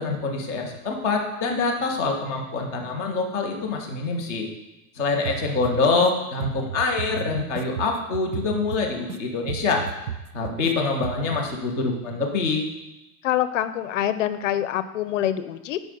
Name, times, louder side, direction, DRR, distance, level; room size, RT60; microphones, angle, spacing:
voice 1, 0.0-4.5 5.0-9.8 10.3-12.6, left 4 dB, 10° right, -7 dB, 0.3 m, -25 dB
sound 1, 5.2-6.1 6.4-9.2 9.5-10.7 11.0-11.4, right 8 dB, 70° right, 0.9 m, -34 dB
voice 2, 13.2-15.8, left 11 dB, 55° left, 13 dB, 0.6 m, -25 dB
9.3 x 4.9 x 6.5 m, 0.96 s
supercardioid pair, 170°, 47 cm